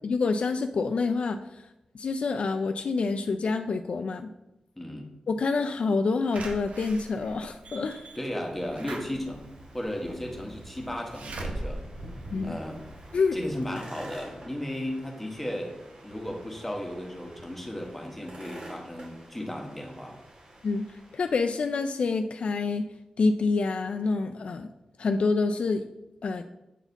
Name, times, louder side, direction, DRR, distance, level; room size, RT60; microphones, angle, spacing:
voice 1, 0.0-1.6 1.9-4.3 5.3-8.1 12.3-12.6 13.1-13.4 20.6-20.9 21.1-22.9 23.2-24.7 25.0-25.8 26.2-26.4, left 4 dB, 65° left, 7 dB, 0.3 m, -27 dB
voice 2, 4.8-5.1 8.2-9.5 9.7-11.8 12.4-12.8 13.3-15.7 16.0-20.2, left 1 dB, 5° left, 0 dB, 1.3 m, -35 dB
Slam / Alarm, 6.3-13.1 13.6-13.7 14.0-14.1, right 2 dB, 90° right, 0.8 m, -41 dB
sound 1, 7.6-21.6, right 1 dB, 50° right, 2.5 m, -48 dB
8.2 x 4.1 x 4.0 m, 0.94 s
wide cardioid pair, 115°, 2 cm